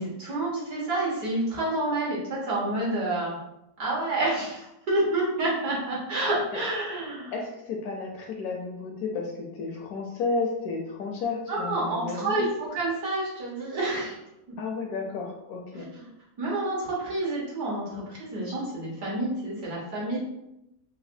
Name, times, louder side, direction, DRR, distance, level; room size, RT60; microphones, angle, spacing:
voice 1, 0.0-3.4 3.8-7.3 11.5-14.2 14.5-14.6 15.7-16.1 16.4-20.2, right 2 dB, 65° right, -6 dB, 1.8 m, -29 dB
voice 2, 7.3-12.5 14.6-15.9, left 4 dB, 70° left, 1 dB, 1.0 m, -32 dB
4.0 x 2.6 x 2.6 m, 0.86 s
omnidirectional pair, 1.8 m